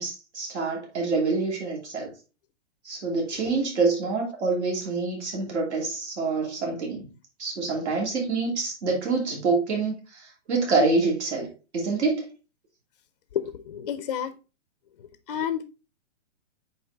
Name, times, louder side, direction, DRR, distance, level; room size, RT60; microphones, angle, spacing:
voice 1, 0.0-2.1 2.8-7.1 7.4-11.5 11.7-12.2, right 3 dB, 70° right, 2.8 m, -26 dB
voice 2, 13.3-14.3 15.3-15.6, left 9 dB, 35° left, 0.5 m, -29 dB
7.1 x 4.4 x 3.3 m
hypercardioid pair, 165°, 36 cm